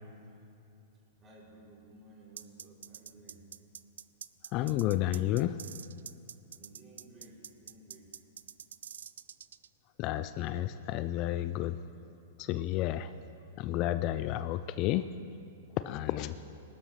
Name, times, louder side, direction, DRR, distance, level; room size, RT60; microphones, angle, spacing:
voice 1, 1.2-3.4 6.5-8.1 15.9-16.5, right 2 dB, 25° right, -4 dB, 3.4 m, -56 dB
sound 1, 2.4-9.7, right 8 dB, 80° right, 0.3 m, -46 dB
voice 2, 4.5-5.6 10.0-11.8 12.4-13.1 13.6-15.1 15.9-16.3, left 14 dB, 40° left, 12 dB, 0.3 m, -31 dB
19.5 x 12.0 x 3.2 m, 2.6 s
hypercardioid pair, 130°, 0 cm